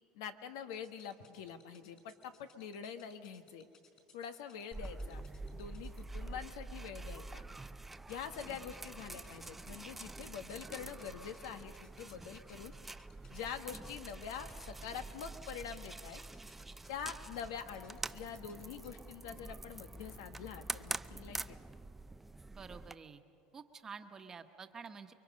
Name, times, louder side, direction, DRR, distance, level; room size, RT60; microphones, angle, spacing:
voice 1, 0.1-3.7 4.1-5.2 5.5-7.5 8.1-12.7 13.3-16.2 16.9-21.6, left 7 dB, 90° left, 8 dB, 1.4 m, -45 dB
sound 1, 0.7-6.0 8.1-19.0, left 6 dB, 40° left, 5.4 m, -64 dB
sound 2, 4.7-23.0, right 2 dB, 10° right, 0.5 m, -46 dB
voice 2, 22.5-23.2 23.5-25.1, right 5 dB, 25° right, 6 dB, 1.2 m, -49 dB
29.5 x 23.0 x 5.3 m, 2.5 s
supercardioid pair, 125°, 2 cm